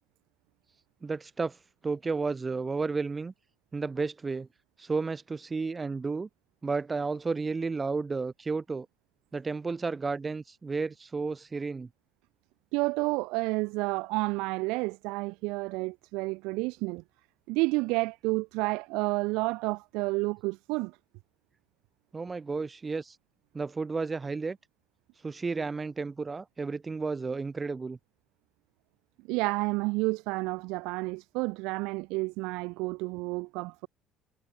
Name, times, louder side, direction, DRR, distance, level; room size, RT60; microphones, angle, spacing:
voice 1, 1.0-1.6 1.8-3.3 3.7-4.5 4.8-6.3 6.6-8.9 9.3-11.9 22.1-23.2 23.5-24.6 25.2-28.0, right 4 dB, 20° right, 4.2 m, -32 dB
voice 2, 12.7-17.0 17.5-20.9 29.3-33.9, right 25 dB, 85° right, 2.3 m, -30 dB
cardioid pair, 105°, 0 cm